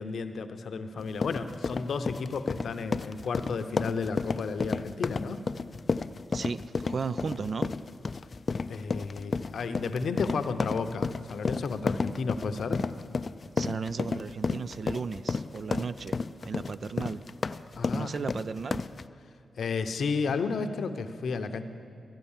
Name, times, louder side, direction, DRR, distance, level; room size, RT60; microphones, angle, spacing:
voice 1, 0.0-5.4 8.7-12.8 17.8-18.1 19.6-21.6, left 4 dB, 75° left, 8 dB, 0.7 m, -32 dB
sound 1, 1.0-19.1, left 4 dB, 50° left, 0.3 m, -32 dB
voice 2, 6.3-7.7 13.6-16.2 16.4-17.2 17.9-18.8, right 5 dB, 60° right, 15 dB, 0.4 m, -35 dB
13.5 x 9.1 x 7.2 m, 2.3 s
cardioid pair, 60°, 0 cm